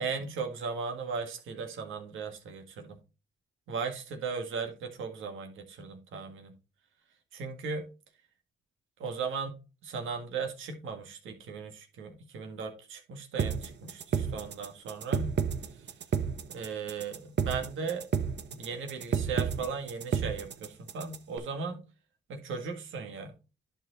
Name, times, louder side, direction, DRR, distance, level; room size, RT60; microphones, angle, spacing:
voice 1, 0.0-3.0 3.7-6.5 7.3-7.9 9.0-9.6 9.8-15.4 16.5-18.1 18.5-21.8 22.3-23.3, right 5 dB, 90° right, 4 dB, 1.9 m, -37 dB
sound 1, 13.4-21.4, right 7 dB, 60° right, 1.1 m, -31 dB
11.0 x 4.4 x 4.0 m, 0.31 s
cardioid pair, 70°, 20 cm